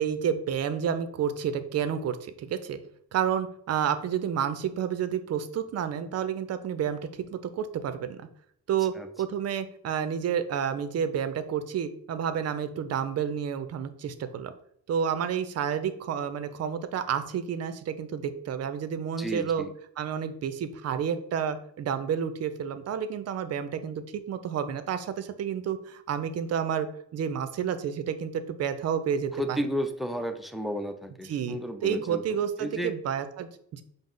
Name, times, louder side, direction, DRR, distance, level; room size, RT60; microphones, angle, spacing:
voice 1, 0.0-2.8 3.1-7.0 7.3-8.3 8.7-14.5 14.9-19.7 20.0-29.6 31.2-33.8, right 8 dB, 55° right, 10 dB, 0.5 m, -30 dB
voice 2, 19.2-19.7 29.3-32.9, equal, ahead, 6 dB, 0.5 m, -33 dB
5.1 x 2.0 x 3.8 m, 0.68 s
cardioid pair, 90°, 30 cm